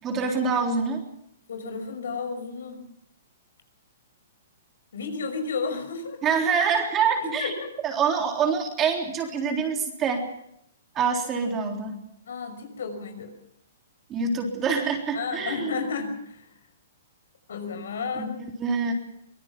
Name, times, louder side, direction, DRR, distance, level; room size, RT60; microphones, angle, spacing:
voice 1, 0.0-1.0 6.2-7.5 7.8-10.2 10.9-12.0 14.1-15.7 18.1-18.3 18.6-18.9, right 5 dB, 20° right, 2 dB, 3.7 m, -25 dB
voice 2, 1.5-2.8 4.9-6.2 7.2-7.7 12.3-13.3 15.1-16.5 17.5-18.4, left 5 dB, 80° left, 7 dB, 5.9 m, -32 dB
24.5 x 19.0 x 6.1 m, 0.72 s
hypercardioid pair, 155°, 0 cm